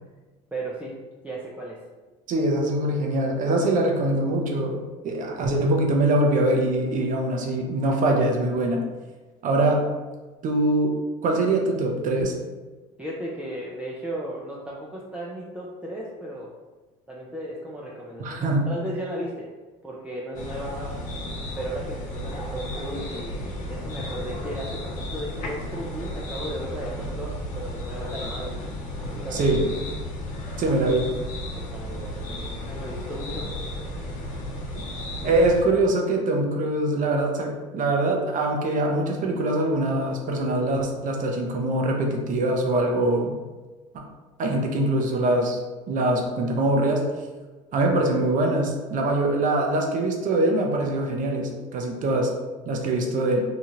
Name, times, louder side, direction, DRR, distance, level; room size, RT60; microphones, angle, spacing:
voice 1, 0.5-1.0 1.2-1.8 13.0-16.5 17.1-19.5 19.8-21.0 21.6-28.6 28.9-29.4 31.5-33.5 35.2-35.3, right 1 dB, 5° right, -5 dB, 0.5 m, -35 dB
voice 2, 2.3-8.8 9.4-9.8 10.4-10.9 11.2-12.3 18.2-18.7 29.3-29.6 30.6-31.1 35.2-43.4 43.9-44.0 44.4-45.6 45.9-47.0 47.7-52.3 52.7-53.4, right 2 dB, 50° right, 1 dB, 0.7 m, -23 dB
sound 1, 20.3-35.6, left 1 dB, 50° left, 0.8 m, -33 dB
2.9 x 2.3 x 3.0 m, 1.3 s
supercardioid pair, 75°, 17 cm